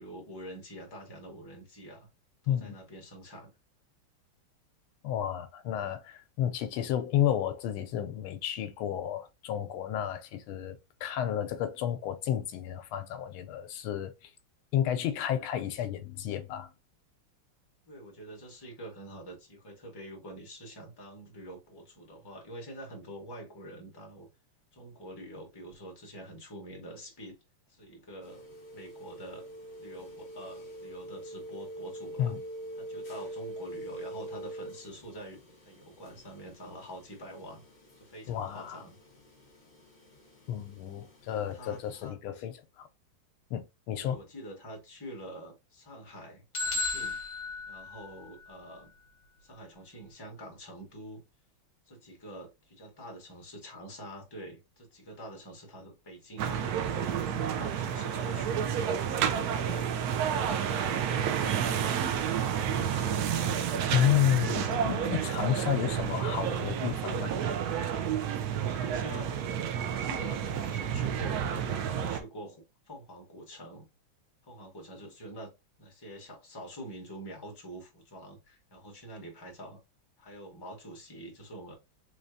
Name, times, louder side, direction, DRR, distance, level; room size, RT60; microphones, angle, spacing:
voice 1, 0.0-2.1 2.4-3.5 17.9-24.3 24.7-27.4 27.7-28.4 28.7-29.5 29.8-32.3 32.7-35.4 35.6-37.6 38.0-39.0 41.3-42.5 44.0-47.2 47.7-48.9 49.4-51.2 51.9-59.9 60.3-63.3 68.5-69.3 69.7-73.9 74.4-75.5 75.8-79.8 80.2-81.7, right 1 dB, 15° left, 1.2 m, -46 dB
voice 2, 2.5-2.8 5.0-14.3 14.7-16.7 32.2-32.4 38.3-38.8 40.5-42.9 43.5-44.2 63.6-67.3, left 10 dB, 85° left, 1.4 m, -31 dB
sound 1, 28.2-42.1, right 1 dB, 35° left, 1.7 m, -45 dB
sound 2, 46.5-48.5, left 3 dB, 50° left, 1.4 m, -34 dB
sound 3, 56.4-72.2, right 8 dB, 85° right, 0.8 m, -30 dB
4.0 x 3.1 x 2.6 m
omnidirectional pair, 2.3 m